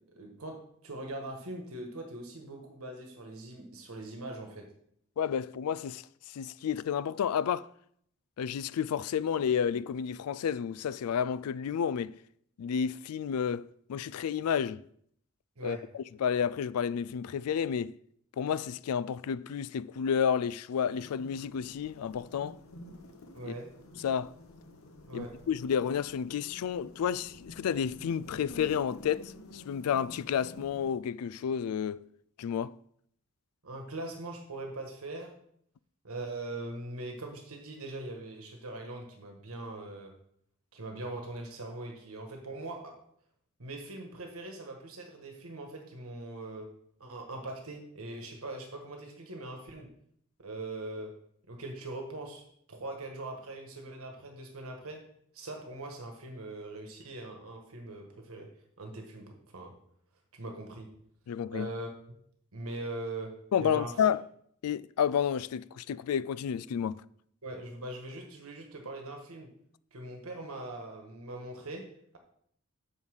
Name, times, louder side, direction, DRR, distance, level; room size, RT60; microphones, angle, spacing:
voice 1, 0.2-4.7 15.6-15.9 23.3-23.8 25.0-25.4 33.6-35.3 36.0-40.2 40.7-43.0 43.6-46.7 47.0-49.9 50.4-51.2 51.5-52.4 52.7-55.0 55.3-58.5 58.8-59.7 60.3-60.9 61.5-61.9 62.5-63.9 67.4-69.5 69.9-72.2, right 2 dB, 80° right, 1.4 m, -41 dB
voice 2, 5.2-7.7 8.4-12.2 12.6-14.8 15.6-18.0 18.4-22.6 23.4-23.5 24.0-24.3 25.1-32.1 32.4-32.8 61.3-61.7 63.5-64.2 64.6-67.0, left 8 dB, 90° left, 0.3 m, -31 dB
sound 1, 21.0-30.9, left 1 dB, 70° left, 1.0 m, -50 dB
6.9 x 5.5 x 6.3 m
head